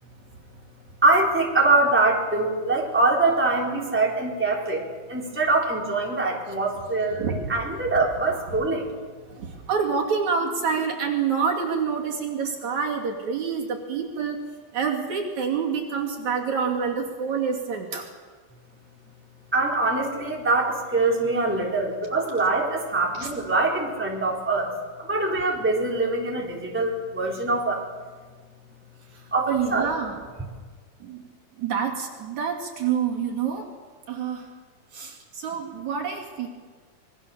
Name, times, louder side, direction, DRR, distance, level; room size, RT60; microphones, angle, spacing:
voice 1, 1.0-8.9 19.5-24.7 25.0-27.8 29.3-29.9, right 3 dB, 5° right, -2 dB, 3.4 m, -23 dB
voice 2, 9.3-14.4 14.7-18.1 23.1-23.3 29.1-30.2 31.0-31.2 31.6-33.7 34.1-34.5 34.9-36.5, right 6 dB, 60° right, 0 dB, 3.9 m, -27 dB
26.0 x 22.5 x 7.0 m, 1.5 s
omnidirectional pair, 3.8 m